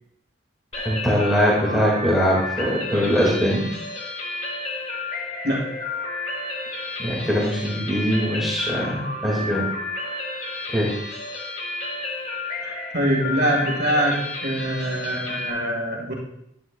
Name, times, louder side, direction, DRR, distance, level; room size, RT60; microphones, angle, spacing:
sound 1, 0.7-15.5, left 2 dB, 35° left, 1.3 m, -31 dB
voice 1, 0.8-3.7 7.0-9.7 10.7-10.9, equal, ahead, -5 dB, 1.9 m, -22 dB
voice 2, 12.6-16.1, equal, 60° right, -1 dB, 1.8 m, -24 dB
10.0 x 9.6 x 2.3 m, 0.76 s
head